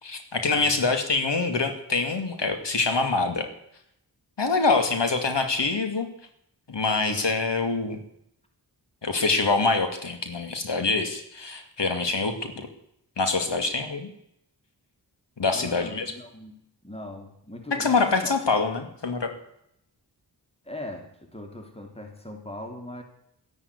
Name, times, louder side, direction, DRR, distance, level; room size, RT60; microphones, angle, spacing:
voice 1, 0.0-3.5 4.4-6.1 6.7-8.0 9.0-12.7 13.2-14.1 15.4-16.1 17.8-19.3, left 3 dB, 85° left, 6 dB, 2.5 m, -25 dB
voice 2, 0.5-0.9 15.5-16.6 16.8-18.3 20.6-23.0, left 1 dB, 15° left, 3 dB, 3.2 m, -40 dB
12.5 x 11.5 x 9.7 m, 0.75 s
wide cardioid pair, 50°, 41 cm